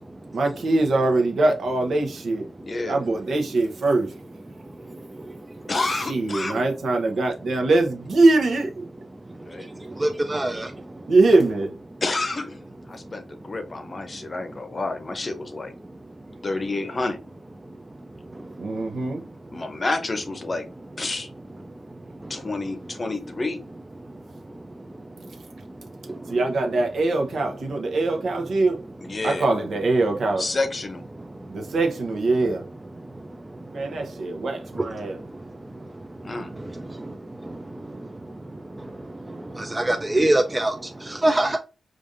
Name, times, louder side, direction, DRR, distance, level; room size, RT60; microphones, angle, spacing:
voice 1, 0.3-2.5 2.9-4.1 6.1-8.8 11.1-11.8 18.6-19.2 26.3-28.8 29.2-30.4 31.5-32.6 33.7-35.2, right 2 dB, 75° right, 0.8 m, -22 dB
voice 2, 2.6-3.0 5.7-6.6 9.4-9.7 12.0-15.7 16.4-17.2 19.5-20.7 21.0-21.3 22.3-23.6 29.0-29.5 30.4-31.0 36.2-36.5, left 2 dB, 35° left, 0.7 m, -29 dB
voice 3, 10.0-10.7 39.6-40.7 41.1-41.6, right 1 dB, 15° right, 0.3 m, -22 dB
5.0 x 2.5 x 2.5 m
wide cardioid pair, 115°, 0 cm